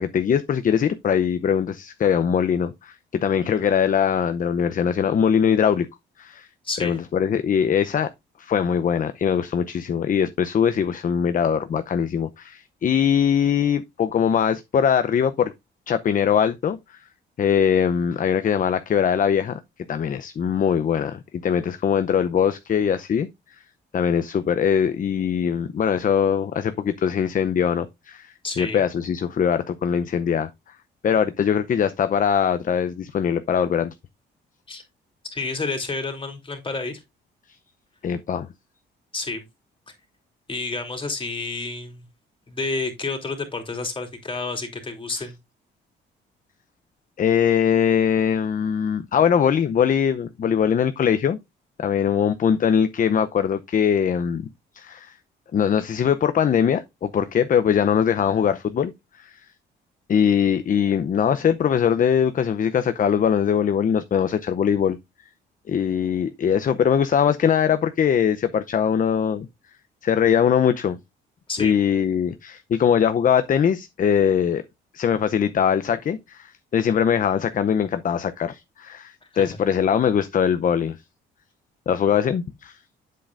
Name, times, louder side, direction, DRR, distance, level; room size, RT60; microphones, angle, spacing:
voice 1, 0.0-5.9 6.2-6.5 6.8-8.1 8.4-15.5 15.9-17.0 17.4-19.6 19.9-23.3 23.9-30.5 31.0-33.9 38.0-38.5 45.1-45.2 47.2-51.4 51.8-54.5 54.7-55.2 55.5-58.9 59.2-59.4 60.1-65.0 65.7-69.5 70.0-71.0 71.6-74.6 74.9-81.0 81.9-82.8, left 8 dB, 45° left, 0.6 m, -21 dB
voice 2, 6.6-7.0 28.4-28.8 34.7-34.8 35.3-37.0 39.1-39.4 40.5-42.0 42.5-45.4 71.5-71.7 79.3-79.6, left 3 dB, 25° left, 3.0 m, -30 dB
8.6 x 7.7 x 2.5 m
cardioid pair, 90°, 20 cm